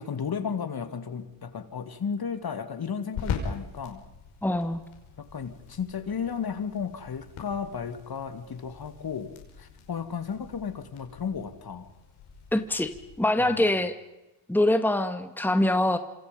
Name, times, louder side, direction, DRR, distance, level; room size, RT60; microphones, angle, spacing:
voice 1, 0.0-4.1 5.2-11.9 13.4-13.7, left 6 dB, 50° left, 9 dB, 2.8 m, -34 dB
sound 1, 1.1-13.3, left 6 dB, 85° left, 5.7 m, -42 dB
voice 2, 4.4-4.8 12.5-12.9 13.2-13.9 14.5-16.0, left 1 dB, 5° left, 8 dB, 1.9 m, -24 dB
27.5 x 26.5 x 5.5 m, 0.98 s
cardioid pair, 75°, 47 cm